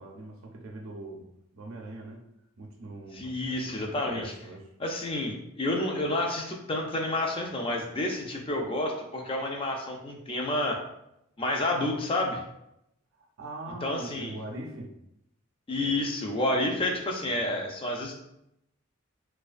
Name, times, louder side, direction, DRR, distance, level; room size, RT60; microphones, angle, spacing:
voice 1, 0.0-2.2 2.6-4.7 13.2-14.9 17.3-17.4, right 2 dB, 80° right, 0 dB, 0.4 m, -42 dB
voice 2, 3.1-4.2 4.8-10.8 11.4-12.4 13.8-14.4 15.7-18.2, left 1 dB, 25° left, 2 dB, 0.3 m, -29 dB
2.4 x 2.2 x 2.4 m, 0.81 s
head